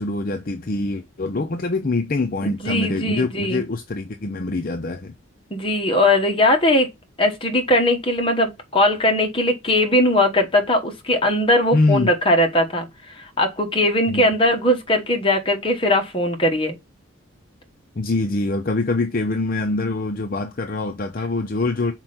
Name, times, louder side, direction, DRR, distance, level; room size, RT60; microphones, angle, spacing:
voice 1, 0.0-5.1 11.7-12.1 14.1-14.2 18.0-21.9, left 2 dB, 45° left, 0.6 m, -24 dB
voice 2, 2.4-3.6 5.5-6.9 7.2-16.8, left 1 dB, 25° left, 1.2 m, -20 dB
5.9 x 4.4 x 3.9 m
head